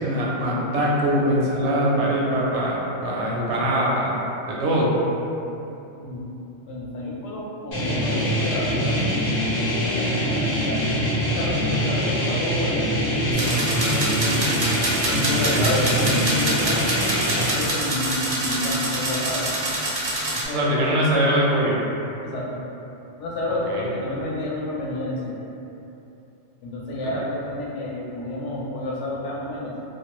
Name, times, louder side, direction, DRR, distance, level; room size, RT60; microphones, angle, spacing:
voice 1, 0.0-4.1 4.5-4.9 15.4-15.7 20.5-21.8 23.5-23.9 27.0-27.1, equal, 70° right, -4 dB, 0.8 m, -22 dB
voice 2, 6.7-9.0 9.5-10.8 11.3-14.6 15.1-19.5 20.3-21.3 22.2-22.6 23.2-25.3 26.6-29.8, left 1 dB, 75° left, -5 dB, 0.9 m, -30 dB
sound 1, 7.7-17.5, equal, 50° left, 0.9 m, -24 dB
sound 2, 13.3-20.4, right 1 dB, 45° right, 0.4 m, -26 dB
2.6 x 2.2 x 2.9 m, 2.9 s
omnidirectional pair, 1.3 m